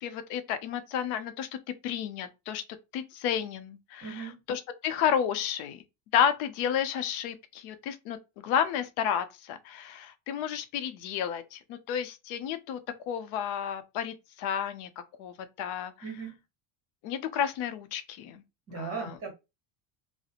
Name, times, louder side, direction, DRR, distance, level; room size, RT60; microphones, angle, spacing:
voice 1, 0.0-2.6 2.9-5.8 6.1-12.8 13.1-14.9 15.2-15.9 17.0-18.4 18.7-19.2, left 9 dB, 85° left, 0.6 m, -31 dB
voice 2, 4.0-4.4 16.0-16.4 18.7-19.3, right 5 dB, 30° right, 1.1 m, -37 dB
2.3 x 2.0 x 2.8 m
cardioid pair, 150°, 47 cm